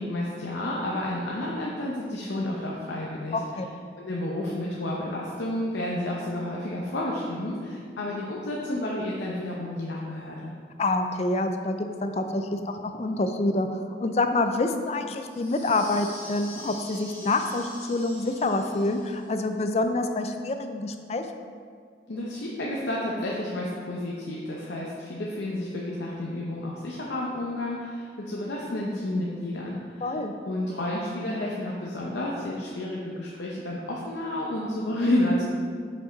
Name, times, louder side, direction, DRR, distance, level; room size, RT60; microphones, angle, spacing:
voice 1, 0.0-3.4 4.0-10.5 22.1-30.1 30.5-35.4, left 1 dB, 80° left, -4 dB, 0.7 m, -30 dB
voice 2, 3.3-3.7 10.8-21.2 30.0-30.3, left 2 dB, 35° left, 6 dB, 0.3 m, -27 dB
sound 1, 15.3-19.3, left 1 dB, 10° left, 1.1 m, -44 dB
5.5 x 5.2 x 3.9 m, 2.1 s
head